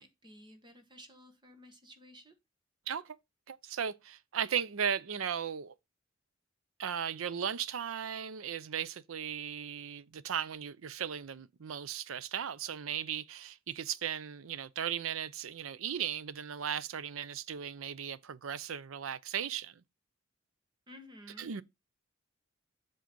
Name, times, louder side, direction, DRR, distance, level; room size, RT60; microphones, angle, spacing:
voice 1, 0.0-2.3 20.9-21.6, equal, 20° right, 1.3 m, -54 dB
voice 2, 3.5-5.7 6.8-19.8 21.4-21.6, right 8 dB, 85° right, 0.5 m, -36 dB
7.7 x 3.8 x 5.3 m
head